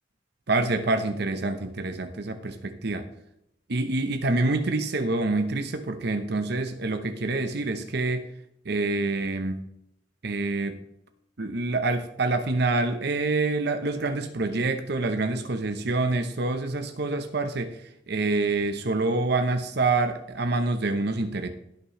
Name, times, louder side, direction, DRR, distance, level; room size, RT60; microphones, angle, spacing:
voice 1, 0.5-3.0 3.7-8.3 8.7-9.6 10.2-10.8 11.4-17.8 18.1-21.5, right 3 dB, 60° right, 8 dB, 0.9 m, -26 dB
17.5 x 6.0 x 3.1 m, 0.78 s
head